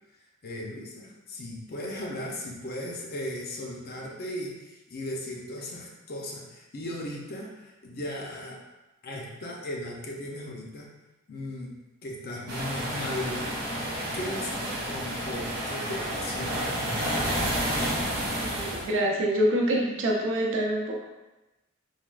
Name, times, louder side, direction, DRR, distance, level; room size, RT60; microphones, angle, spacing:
voice 1, 0.4-8.6 9.0-10.9 11.3-11.7 12.0-13.7 14.1-16.7, left 1 dB, 45° left, -2 dB, 0.5 m, -37 dB
sound 1, 12.5-18.9, equal, 45° right, 0.9 m, -30 dB
voice 2, 18.4-21.0, equal, 60° right, -1 dB, 0.5 m, -26 dB
3.3 x 2.3 x 2.3 m, 1.0 s
head